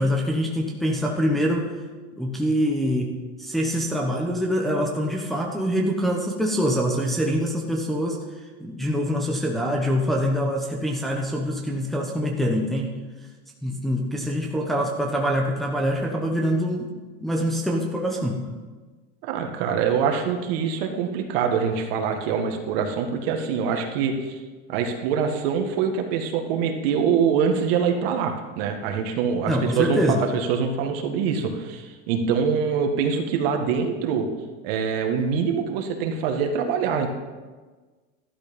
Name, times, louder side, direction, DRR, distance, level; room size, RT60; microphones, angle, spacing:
voice 1, 0.0-1.7 2.2-8.2 8.6-12.9 13.6-16.9 17.2-18.5 29.5-30.2, equal, ahead, -2 dB, 1.1 m, -24 dB
voice 2, 19.2-24.4 24.7-34.3 34.6-37.1, right 6 dB, 55° right, 4 dB, 1.9 m, -24 dB
13.5 x 12.0 x 5.3 m, 1.3 s
supercardioid pair, 155°, 34 cm